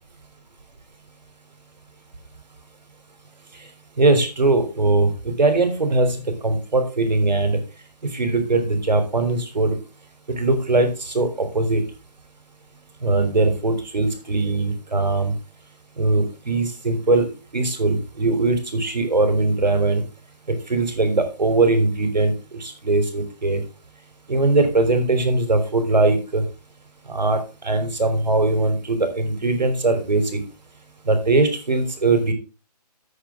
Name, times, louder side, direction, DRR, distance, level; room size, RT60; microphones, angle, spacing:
voice 1, 4.0-7.6 8.1-9.8 10.3-11.8 13.0-15.3 16.0-17.3 17.5-20.0 20.5-22.3 22.6-23.6 24.3-26.4 27.1-30.4 31.1-32.3, right 2 dB, 90° right, 8 dB, 3.5 m, -20 dB
11.0 x 8.1 x 3.7 m, 0.31 s
hypercardioid pair, 165°, 21 cm